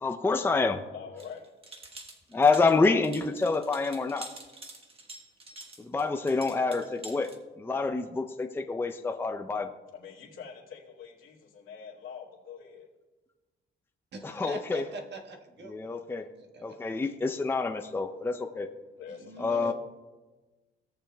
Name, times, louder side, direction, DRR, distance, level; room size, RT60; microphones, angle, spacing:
voice 1, 0.0-0.8 2.3-4.3 5.8-7.3 7.6-9.7 14.2-14.9 15.7-16.3 16.6-18.7 19.4-19.7, left 4 dB, 10° left, 6 dB, 0.5 m, -27 dB
voice 2, 0.9-1.4 9.9-12.9 19.0-19.6, left 7 dB, 80° left, -3 dB, 2.1 m, -45 dB
sound 1, 1.2-7.4, right 2 dB, 30° right, 1.4 m, -47 dB
voice 3, 14.1-16.0 16.5-16.6 19.1-19.7, right 1 dB, 60° right, 3 dB, 1.4 m, -42 dB
17.5 x 6.8 x 2.2 m, 1.2 s
cardioid pair, 90°, 20 cm